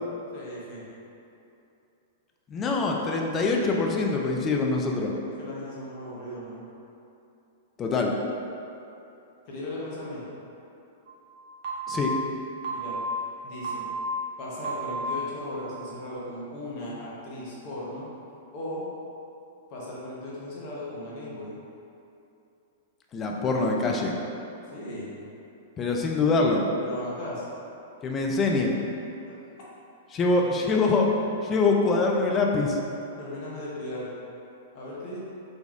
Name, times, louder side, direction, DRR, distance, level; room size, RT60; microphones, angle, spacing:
voice 1, 0.3-0.8 5.3-6.6 9.4-10.2 12.7-13.0 13.4-13.9 14.4-18.1 18.5-18.9 19.7-21.6 24.7-25.1 26.8-27.4 30.3-30.5 33.2-34.1 34.7-35.2, left 1 dB, 40° left, -6 dB, 1.0 m, -37 dB
voice 2, 2.5-5.1 7.8-8.1 11.9-12.1 23.1-24.1 25.8-26.6 28.0-28.8 30.1-31.1 31.4-32.8, left 3 dB, 25° left, 0 dB, 0.4 m, -24 dB
sound 1, 11.1-11.2 11.6-12.2 12.6-13.2 13.6-14.2 14.6-15.2, right 1 dB, 50° right, 0.8 m, -31 dB
3.9 x 2.3 x 3.3 m, 2.8 s
figure-of-eight pair, 100°, 0 cm